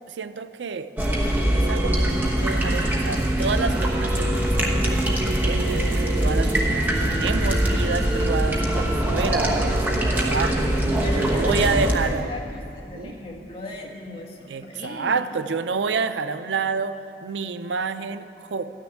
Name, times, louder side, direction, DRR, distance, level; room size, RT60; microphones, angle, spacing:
voice 1, 0.1-0.9 1.5-5.8 6.2-10.7 11.1-12.3 12.9-13.1 14.5-18.7, right 5 dB, 90° right, 11 dB, 0.5 m, -29 dB
sound 1, 1.0-12.0, right 1 dB, 10° right, 1.1 m, -22 dB
voice 2, 11.0-15.2, left 1 dB, 35° left, -1 dB, 1.6 m, -37 dB
13.5 x 6.6 x 9.9 m, 2.8 s
head